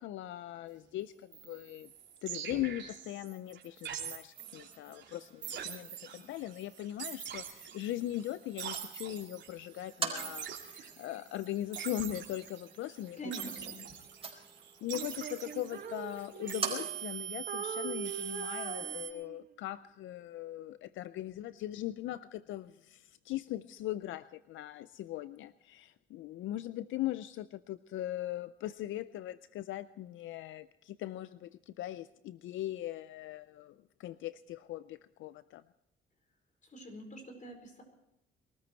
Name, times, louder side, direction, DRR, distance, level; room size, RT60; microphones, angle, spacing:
voice 1, 0.0-1.9 2.2-13.2 14.8-35.6, left 14 dB, 80° left, 15 dB, 0.5 m, -40 dB
sound 1, 1.3-19.1, right 10 dB, 65° right, 2.9 m, -44 dB
sound 2, 4.4-17.4, right 4 dB, 30° right, 4.5 m, -46 dB
voice 2, 13.2-13.8 36.6-37.8, right 1 dB, 40° left, 5 dB, 4.6 m, -44 dB
Female singing, 14.9-17.2 17.5-19.5, right 6 dB, 45° right, 1.3 m, -42 dB
22.0 x 13.5 x 4.5 m, 0.83 s
cardioid pair, 90°, 20 cm